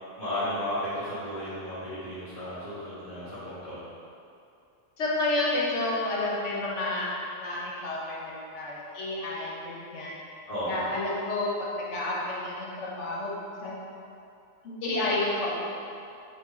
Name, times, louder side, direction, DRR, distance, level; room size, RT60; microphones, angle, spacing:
voice 1, 0.2-3.8 10.5-10.7, left 1 dB, 35° left, -14 dB, 1.2 m, -34 dB
voice 2, 5.0-10.2 10.7-13.9 14.6-15.6, left 2 dB, 80° left, -4 dB, 1.1 m, -30 dB
4.8 x 2.5 x 4.1 m, 2.6 s
omnidirectional pair, 1.3 m